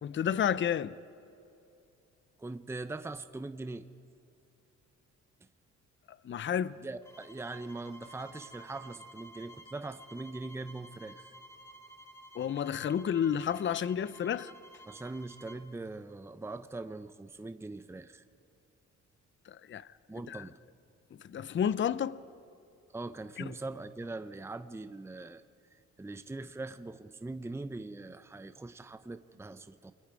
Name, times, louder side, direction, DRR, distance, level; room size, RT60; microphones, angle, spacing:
voice 1, 0.0-0.9 6.2-6.7 12.4-14.5 19.5-19.9 20.3-20.4 21.3-22.2 23.4-23.5, left 8 dB, 40° left, 0.6 m, -31 dB
voice 2, 2.4-3.9 6.8-11.3 14.9-18.2 20.1-20.5 22.9-25.4 26.0-29.9, right 2 dB, 10° right, 0.7 m, -41 dB
sound 1, 7.0-15.7, right 1 dB, 10° left, 2.9 m, -53 dB
29.0 x 22.5 x 4.8 m
cardioid pair, 90°, 30 cm